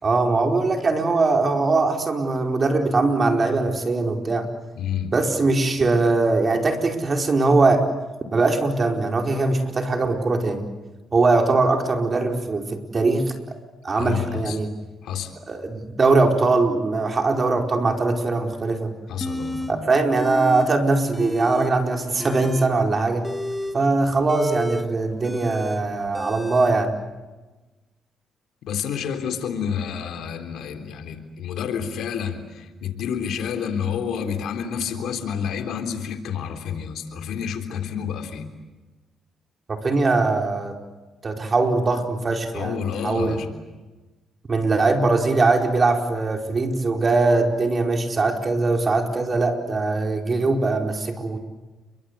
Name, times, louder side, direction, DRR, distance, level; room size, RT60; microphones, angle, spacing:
voice 1, 0.0-4.5 5.1-7.9 8.3-10.6 11.1-13.3 13.8-14.7 15.5-18.9 19.7-23.3 23.7-26.9 39.7-40.8 41.2-43.4 44.5-51.4, right 3 dB, 35° right, 3 dB, 4.7 m, -21 dB
voice 2, 4.8-5.2 14.0-14.6 15.0-15.3 19.1-19.7 28.7-38.5 42.5-43.6, left 7 dB, 80° left, 7 dB, 3.5 m, -29 dB
sound 1, 19.2-19.7 20.1-20.7 21.0-21.7 22.1-26.7, left 1 dB, 10° left, 2.1 m, -31 dB
29.5 x 24.0 x 8.3 m, 1.2 s
cardioid pair, 90°, 0 cm